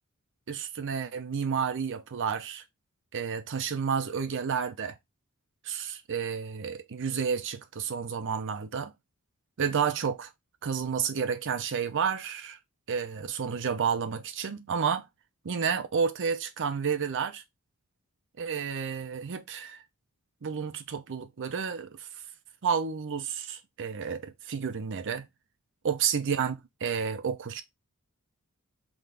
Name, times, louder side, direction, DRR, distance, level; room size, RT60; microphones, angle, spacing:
voice 1, 0.5-2.6 3.1-5.0 5.6-8.9 9.6-10.3 10.6-12.6 12.9-15.1 15.4-17.4 18.4-19.8 20.4-22.1 22.6-25.3 25.8-27.6, right 6 dB, 55° right, 0.6 m, -31 dB
3.8 x 2.5 x 3.3 m
head